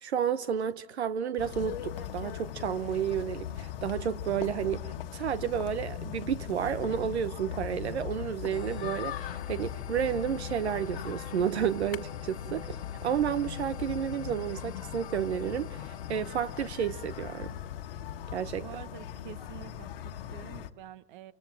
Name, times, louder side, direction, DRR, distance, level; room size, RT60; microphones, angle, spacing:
voice 1, 0.0-4.8 5.1-12.8 13.0-17.5 18.3-18.6, right 9 dB, 80° right, 1.0 m, -31 dB
sound 1, 1.4-20.7, left 10 dB, 55° left, 1.4 m, -39 dB
sound 2, 8.5-17.9, left 9 dB, 85° left, 1.0 m, -49 dB
voice 2, 18.6-21.3, right 12 dB, 50° right, 1.4 m, -47 dB
29.0 x 25.0 x 7.5 m
hypercardioid pair, 140°, 33 cm